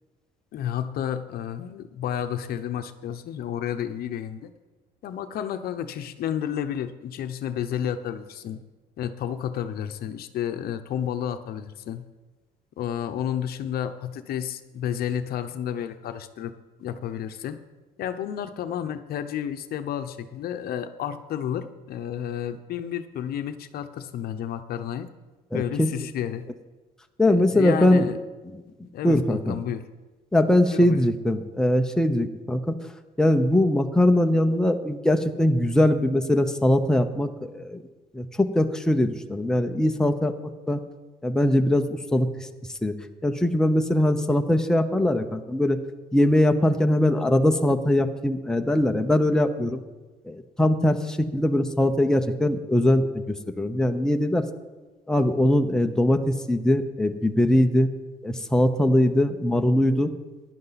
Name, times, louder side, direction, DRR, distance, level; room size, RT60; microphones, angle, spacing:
voice 1, 0.5-4.5 5.0-8.6 9.0-12.0 12.8-16.5 16.8-17.6 18.0-25.1 25.5-26.5 27.3-28.2 28.9-29.8 30.7-31.0, left 9 dB, 65° left, 9 dB, 0.8 m, -31 dB
voice 2, 25.5-25.9 27.2-28.1 28.5-28.6 29.0-29.6 30.3-32.8 33.2-37.8 38.1-40.3 40.7-40.8 41.2-42.5 42.8-42.9 43.2-45.8 46.1-49.8 50.3-53.0 53.6-54.5 55.1-57.9 58.2-60.1, left 1 dB, 5° left, 6 dB, 0.7 m, -21 dB
15.0 x 10.5 x 4.1 m, 1.2 s
cardioid pair, 110°, 17 cm